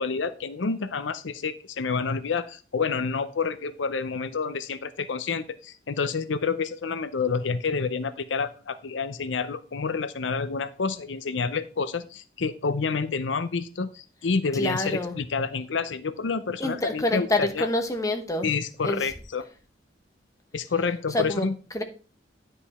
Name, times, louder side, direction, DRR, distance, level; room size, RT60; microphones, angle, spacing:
voice 1, 0.0-17.7 18.4-19.5 20.5-21.6, left 5 dB, 90° left, 13 dB, 0.6 m, -28 dB
voice 2, 14.5-15.1 16.6-18.5 18.8-19.0 21.1-21.5 21.7-21.8, left 1 dB, 20° left, 5 dB, 1.1 m, -27 dB
10.5 x 5.1 x 4.2 m, 0.37 s
head